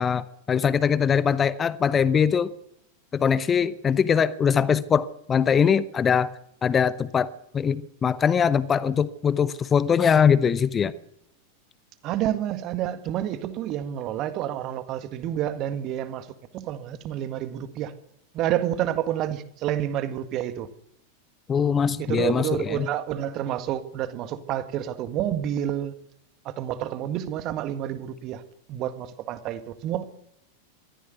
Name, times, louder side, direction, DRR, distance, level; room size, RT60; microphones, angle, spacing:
voice 1, 0.0-2.5 3.1-6.3 6.6-7.3 7.5-10.9 21.5-22.9, left 7 dB, 20° left, 0.9 m, -22 dB
voice 2, 12.0-16.3 16.5-17.9 18.3-20.7 22.0-25.9 26.4-28.4 28.7-30.0, right 11 dB, 35° right, 1.8 m, -29 dB
23.0 x 15.0 x 8.1 m
figure-of-eight pair, 90°, 0 cm